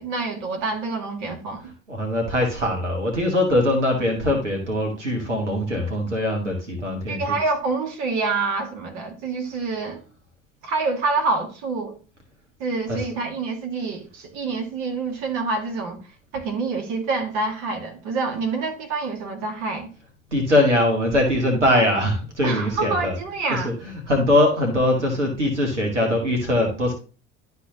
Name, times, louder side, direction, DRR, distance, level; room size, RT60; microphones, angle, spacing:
voice 1, 0.0-1.7 7.1-10.0 10.6-12.0 12.6-16.0 16.3-19.9 22.4-23.7, right 3 dB, 60° right, 1.5 m, -27 dB
voice 2, 1.9-7.4 12.9-13.0 20.3-23.1 23.5-26.9, left 1 dB, 85° right, 1.3 m, -22 dB
11.5 x 4.3 x 2.7 m
figure-of-eight pair, 55°, 35 cm